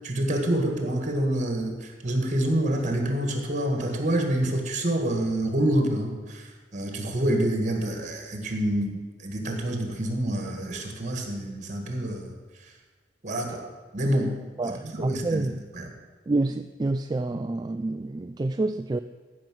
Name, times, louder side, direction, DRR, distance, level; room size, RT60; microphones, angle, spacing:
voice 1, 0.0-6.5 6.7-9.0 9.2-12.3 13.2-13.7 13.9-14.4 14.6-15.5 15.7-15.9, right 1 dB, 45° right, 4 dB, 1.9 m, -27 dB
voice 2, 14.6-15.6 16.3-19.0, right 2 dB, 20° right, 8 dB, 0.3 m, -28 dB
13.5 x 5.5 x 7.8 m, 1.3 s
head